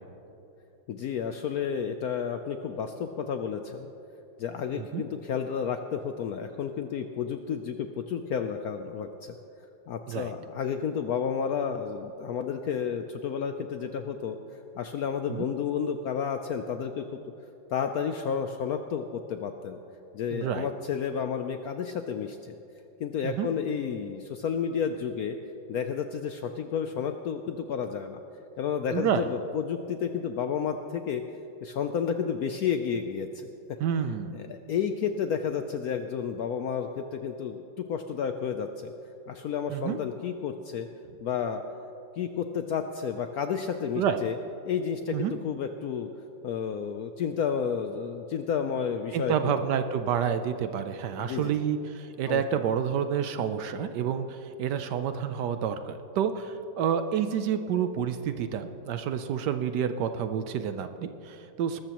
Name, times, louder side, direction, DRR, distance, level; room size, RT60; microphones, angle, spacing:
voice 1, 0.9-3.9 4.4-9.3 9.9-14.4 14.8-17.1 17.7-19.8 20.1-22.6 23.0-25.4 25.7-28.2 28.6-31.2 31.6-33.5 34.3-38.9 39.3-40.9 41.2-41.6 42.2-44.4 44.6-46.1 46.4-49.7 51.2-51.7 52.3-52.4, left 7 dB, 70° left, 7 dB, 0.9 m, -31 dB
voice 2, 20.3-20.7 23.2-23.5 28.9-29.3 33.8-34.4 39.7-40.0 44.0-44.2 45.1-45.4 49.1-61.8, right 8 dB, 70° right, 9 dB, 1.1 m, -29 dB
20.5 x 13.5 x 3.0 m, 2.9 s
omnidirectional pair, 2.1 m